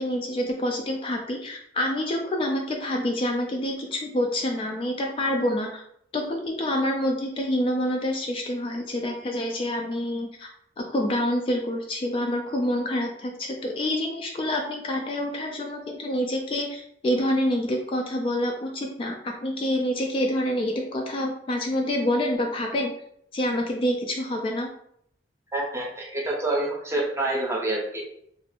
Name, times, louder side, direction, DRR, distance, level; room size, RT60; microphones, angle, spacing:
voice 1, 0.0-5.8 6.1-10.5 10.8-22.9 23.3-24.7, left 1 dB, 30° left, 1 dB, 0.3 m, -27 dB
voice 2, 25.5-28.0, right 2 dB, 15° right, -2 dB, 0.7 m, -27 dB
2.4 x 2.4 x 3.3 m, 0.69 s
head